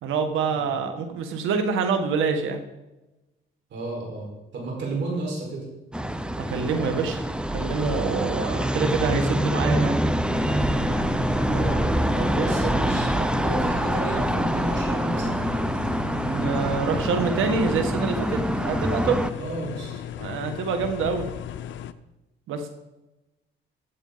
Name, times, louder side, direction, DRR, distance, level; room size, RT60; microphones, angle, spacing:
voice 1, 0.0-2.6 6.5-7.3 7.5-10.0 16.3-19.3 20.2-21.3 22.5-22.7, right 5 dB, 85° right, 6 dB, 1.6 m, -26 dB
voice 2, 3.7-5.6 11.5-11.9 12.1-15.4 19.4-20.0, right 2 dB, 65° right, -1 dB, 4.7 m, -32 dB
sound 1, 5.9-19.3, right 1 dB, 5° right, 0.6 m, -25 dB
sound 2, 10.3-21.9, left 10 dB, 70° left, 0.6 m, -36 dB
15.0 x 8.3 x 4.0 m, 1.0 s
cardioid pair, 90°, 20 cm